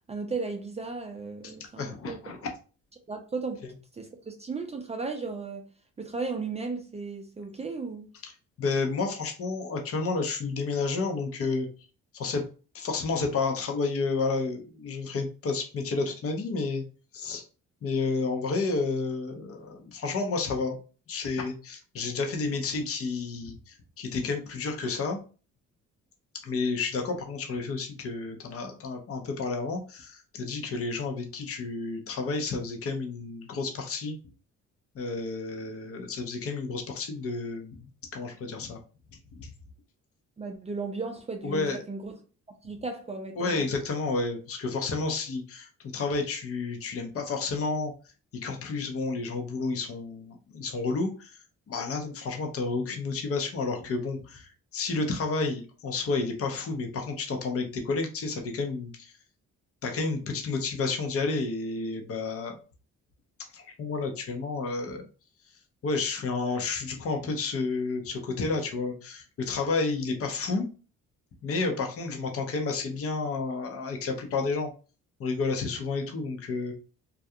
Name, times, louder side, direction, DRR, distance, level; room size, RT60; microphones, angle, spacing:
voice 1, 0.1-2.2 3.1-3.6 3.9-5.7 6.0-8.1 40.4-42.2 42.6-43.7, right 4 dB, 20° right, 0.4 m, -35 dB
voice 2, 1.4-2.4 8.2-8.3 8.6-11.7 12.1-12.5 12.7-16.8 17.1-17.4 17.8-20.8 21.1-25.2 26.4-34.2 34.9-38.8 39.3-39.5 41.4-41.8 43.4-47.9 48.4-51.4 51.7-59.1 59.8-62.6 63.5-65.0 65.8-70.7 71.4-74.7 75.2-76.7, left 4 dB, 50° left, 0.7 m, -31 dB
2.4 x 2.2 x 2.7 m
cardioid pair, 90°, 30 cm